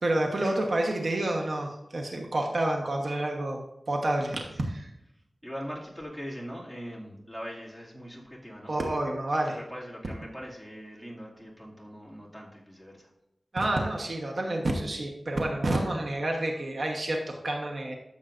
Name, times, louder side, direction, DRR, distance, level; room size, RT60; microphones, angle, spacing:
voice 1, 0.0-4.9 8.7-9.6 13.5-17.9, right 1 dB, 65° right, 1 dB, 1.1 m, -29 dB
voice 2, 4.4-4.7 5.4-8.7 9.5-13.1, equal, 5° right, -4 dB, 2.3 m, -41 dB
13.5 x 7.2 x 2.6 m, 0.86 s
wide cardioid pair, 85°, 0 cm